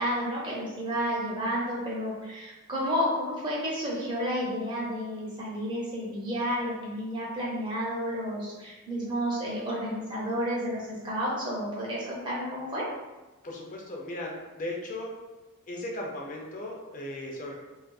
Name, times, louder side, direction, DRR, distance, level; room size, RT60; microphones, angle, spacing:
voice 1, 0.0-12.9, equal, 20° right, -6 dB, 0.6 m, -31 dB
voice 2, 13.4-15.1 15.7-17.5, left 1 dB, 35° left, -1 dB, 0.4 m, -37 dB
2.4 x 2.4 x 2.2 m, 1.1 s
head